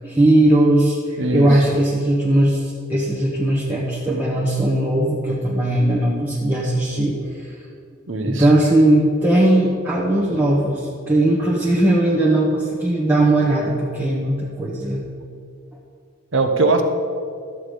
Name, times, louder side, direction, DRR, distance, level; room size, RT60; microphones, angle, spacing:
voice 1, 0.0-7.6 8.3-15.1, right 1 dB, 10° right, -6 dB, 1.1 m, -18 dB
voice 2, 1.2-1.6 8.1-8.5 16.3-16.8, right 3 dB, 65° right, 6 dB, 1.0 m, -20 dB
13.0 x 7.8 x 5.0 m, 2.4 s
head